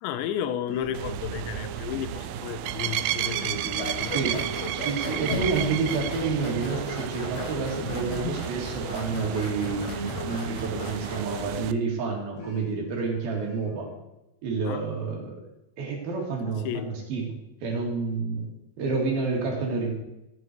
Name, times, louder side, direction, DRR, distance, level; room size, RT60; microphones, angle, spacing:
voice 1, 0.0-4.1 14.7-14.8 16.6-16.9, left 10 dB, 90° left, 12 dB, 3.1 m, -33 dB
sound 1, 0.7-11.8 12.4-13.9, equal, 70° left, 4.7 m, -42 dB
sound 2, 0.9-11.7, right 14 dB, 90° right, 2.1 m, -33 dB
sound 3, 3.7-11.5, left 2 dB, 45° left, 3.0 m, -36 dB
voice 2, 4.1-13.9 14.4-15.4 15.8-18.5 18.8-19.9, right 4 dB, 60° right, 0 dB, 4.1 m, -29 dB
14.0 x 9.4 x 4.6 m, 0.91 s
omnidirectional pair, 5.0 m